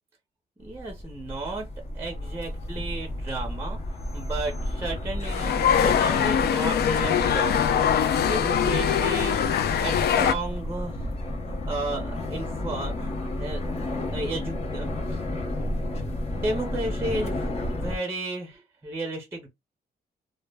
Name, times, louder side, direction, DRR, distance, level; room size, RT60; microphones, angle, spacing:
sound 1, 0.6-18.0, left 1 dB, 40° left, 0.6 m, -32 dB
voice 1, 0.6-1.7 1.9-3.8 4.1-11.1 11.5-15.2 16.4-19.5, right 2 dB, 15° right, 0.6 m, -34 dB
sound 2, 5.2-10.3, left 8 dB, 80° left, 0.4 m, -23 dB
2.2 x 2.0 x 3.3 m
wide cardioid pair, 180°, 16 cm